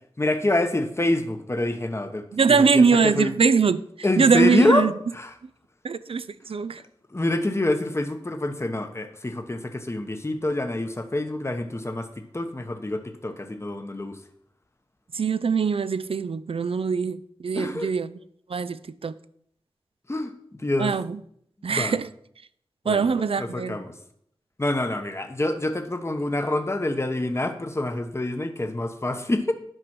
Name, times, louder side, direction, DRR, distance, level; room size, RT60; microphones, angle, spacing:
voice 1, 0.2-3.3 4.0-5.3 7.1-14.2 17.5-17.9 20.1-21.0 21.7-21.9 22.8-24.0 24.6-29.5, left 1 dB, 25° left, 0.9 m, -26 dB
voice 2, 2.3-3.8 4.2-4.9 5.8-6.8 15.1-18.1 18.5-19.1 20.8-21.2 21.6-22.1 22.9-23.8, right 5 dB, 75° right, 0.4 m, -22 dB
9.0 x 5.2 x 6.0 m
wide cardioid pair, 60°, 10 cm